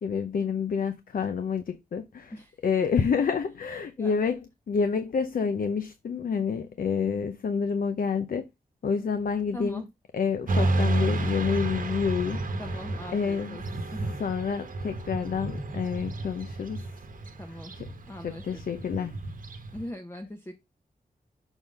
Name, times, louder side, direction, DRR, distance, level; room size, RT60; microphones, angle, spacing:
voice 1, 0.0-2.3 2.6-4.4 4.7-8.5 8.8-9.8 10.1-12.4 12.7-12.8 13.1-13.8 14.2-16.8 17.7-17.9 18.2-19.2, left 6 dB, 65° left, 0.6 m, -28 dB
voice 2, 9.5-9.9 12.6-13.6 13.9-14.1 17.4-17.7 18.1-18.6 19.7-20.5, left 1 dB, 15° left, 0.8 m, -40 dB
Motorcycle / Traffic noise roadway noise, 10.5-19.9, right 2 dB, 60° right, 1.0 m, -31 dB
6.2 x 3.7 x 5.4 m
wide cardioid pair, 145°, 15 cm